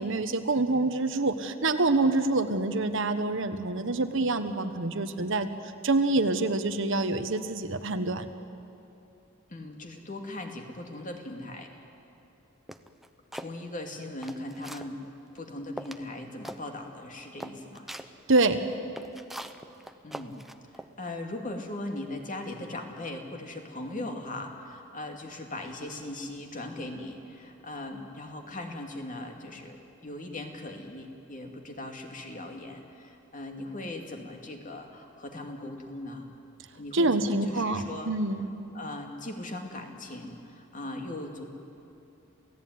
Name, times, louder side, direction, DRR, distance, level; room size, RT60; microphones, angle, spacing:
voice 1, 0.0-5.5 5.8-8.3 18.3-18.6 36.9-38.4, right 2 dB, 65° right, 9 dB, 1.3 m, -26 dB
voice 2, 9.5-11.8 13.3-15.0 15.3-17.9 20.0-20.4 20.7-36.3 36.7-38.1 38.7-41.4, left 1 dB, 40° left, 3 dB, 2.6 m, -39 dB
sound 1, 12.7-13.5 14.0-14.9 15.4-15.5 15.8-16.1 16.4-16.6 17.0-17.1 17.4-18.1 18.7-20.9, equal, ahead, 0.8 m, -41 dB
28.0 x 16.5 x 9.6 m, 2.8 s
head